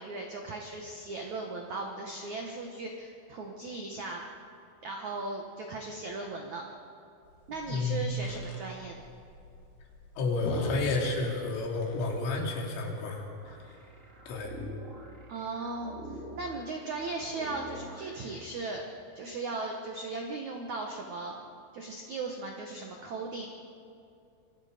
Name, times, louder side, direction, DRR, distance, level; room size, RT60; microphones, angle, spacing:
voice 1, 0.0-4.2 4.8-6.6 7.5-8.9 15.3-15.9 16.3-18.8 19.1-21.3 21.7-23.5, right 3 dB, 85° right, 1 dB, 1.6 m, -37 dB
sound 1, 7.2-12.3, left 2 dB, 60° left, 4.7 m, -41 dB
voice 2, 7.7-8.0 10.2-13.6 14.3-14.6, left 3 dB, 80° left, 0 dB, 5.5 m, -31 dB
sound 2, 13.4-18.4, equal, 25° right, 1.6 m, -46 dB
27.0 x 25.0 x 5.2 m, 2.6 s
omnidirectional pair, 5.8 m